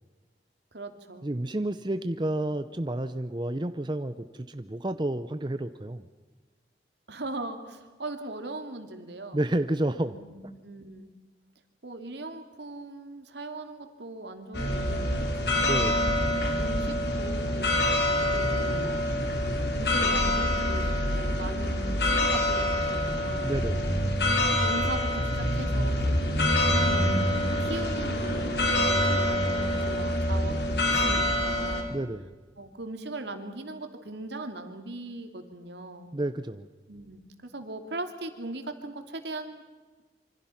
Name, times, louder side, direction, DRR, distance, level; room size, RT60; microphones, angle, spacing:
voice 1, 0.7-1.3 7.1-9.4 10.1-11.1 11.8-16.2 16.6-17.7 18.3-19.3 19.7-23.9 24.6-27.2 27.6-31.9 32.6-36.1 36.9-39.6, right 2 dB, 80° right, 6 dB, 2.7 m, -39 dB
voice 2, 1.2-6.1 9.3-10.1 15.6-16.1 23.4-23.9 31.9-32.3 36.1-36.7, right 1 dB, 25° right, 11 dB, 0.7 m, -30 dB
sound 1, 14.5-31.8, left 1 dB, 75° left, 4.0 m, -26 dB
26.5 x 25.0 x 5.8 m, 1.3 s
head